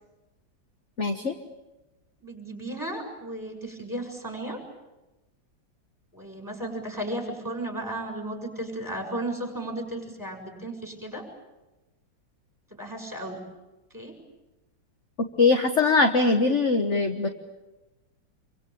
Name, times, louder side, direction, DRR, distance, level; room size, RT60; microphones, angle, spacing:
voice 1, 1.0-1.3 15.4-17.3, left 3 dB, 40° left, 5 dB, 1.6 m, -21 dB
voice 2, 2.2-4.6 6.1-11.2 12.7-13.4 13.9-14.1, right 1 dB, 10° right, 4 dB, 7.0 m, -34 dB
27.5 x 25.0 x 8.6 m, 1.1 s
omnidirectional pair, 2.1 m